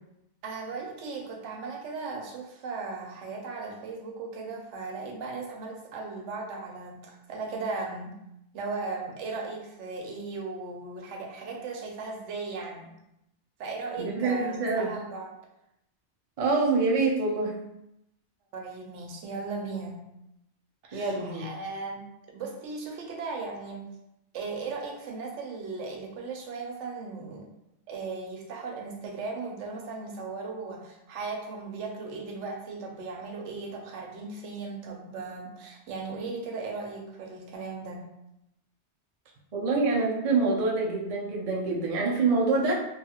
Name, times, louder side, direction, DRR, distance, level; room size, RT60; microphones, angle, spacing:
voice 1, 0.4-8.2 8.5-12.9 13.6-15.3 18.5-20.0 20.8-22.0 22.3-23.9 24.3-27.4 27.9-38.1, right 4 dB, 85° right, 1 dB, 0.9 m, -37 dB
voice 2, 14.0-14.9 16.4-17.5 20.9-21.5 39.5-42.7, right 3 dB, 45° right, -2 dB, 0.4 m, -26 dB
2.6 x 2.3 x 2.8 m, 0.84 s
omnidirectional pair, 1.2 m